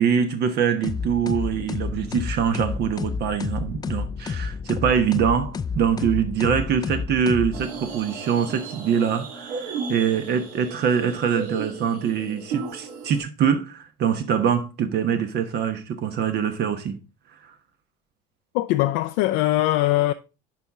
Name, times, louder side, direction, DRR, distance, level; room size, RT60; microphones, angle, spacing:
voice 1, 0.0-17.0, right 7 dB, 55° right, 1.1 m, -24 dB
sound 1, 0.8-8.0, left 5 dB, 20° left, 0.4 m, -30 dB
sound 2, 7.5-13.2, right 5 dB, 80° right, 2.1 m, -35 dB
voice 2, 18.5-20.1, left 16 dB, 80° left, 0.5 m, -21 dB
10.5 x 4.3 x 3.6 m
cardioid pair, 120°, 20 cm